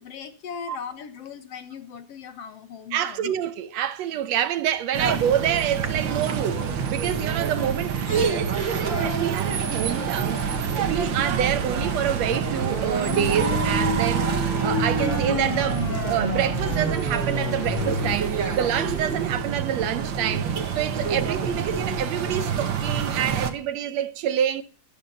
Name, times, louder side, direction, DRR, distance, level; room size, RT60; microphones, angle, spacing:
voice 1, 0.0-3.3 20.3-20.4 20.9-21.2, left 7 dB, 60° left, 2.1 m, -38 dB
voice 2, 2.9-14.3 14.6-24.6, right 10 dB, 70° right, 1.9 m, -27 dB
sound 1, 4.9-23.5, right 6 dB, 45° right, 1.9 m, -27 dB
sound 2, 7.3-7.7 8.1-11.7 15.0-19.4, left 2 dB, 80° left, 6.9 m, -39 dB
sound 3, 12.2-18.1, left 3 dB, 20° left, 2.7 m, -30 dB
13.0 x 12.0 x 5.6 m
omnidirectional pair, 3.3 m